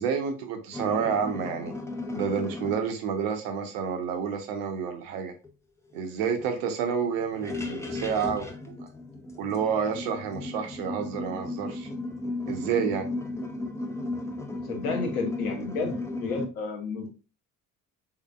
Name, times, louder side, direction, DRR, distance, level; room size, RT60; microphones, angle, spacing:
voice 1, 0.0-1.7 2.1-5.3 5.9-8.7 9.4-11.9 12.5-13.1, right 6 dB, 65° right, 6 dB, 0.8 m, -29 dB
sound 1, 0.7-2.8 5.4-5.5 5.9-6.0 6.4-6.5 7.2-16.5, left 2 dB, 5° left, 0.5 m, -35 dB
voice 2, 14.7-15.9 16.2-17.1, left 4 dB, 75° left, 3 dB, 0.9 m, -31 dB
3.7 x 3.4 x 2.2 m, 0.33 s
figure-of-eight pair, 50°, 42 cm